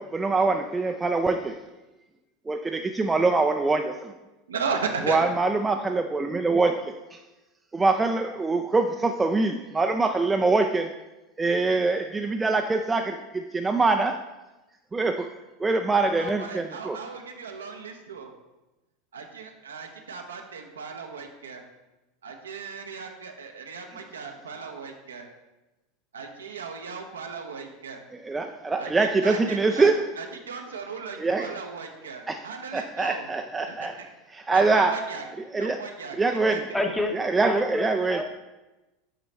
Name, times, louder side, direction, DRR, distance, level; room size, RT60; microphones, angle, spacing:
voice 1, 0.0-1.6 2.5-4.1 5.0-7.2 7.7-10.9 11.4-14.2 14.9-15.3 15.6-17.0 28.1-30.1 31.2-31.6 32.3-32.5 32.7-34.0 34.3-35.1 35.5-35.9 36.2-36.7 37.1-38.2, right 3 dB, 15° right, 4 dB, 0.4 m, -24 dB
voice 2, 4.5-5.2 16.2-18.3 19.1-21.6 22.2-25.3 26.1-28.0 28.8-29.9 30.2-33.3 33.8-33.9 34.5-35.2 35.5-36.6, right 5 dB, 85° right, 3 dB, 0.7 m, -36 dB
voice 3, 36.7-37.2 37.4-38.2, left 2 dB, 10° left, 4 dB, 0.8 m, -28 dB
7.6 x 4.1 x 3.2 m, 1.0 s
hypercardioid pair, 85°, 0 cm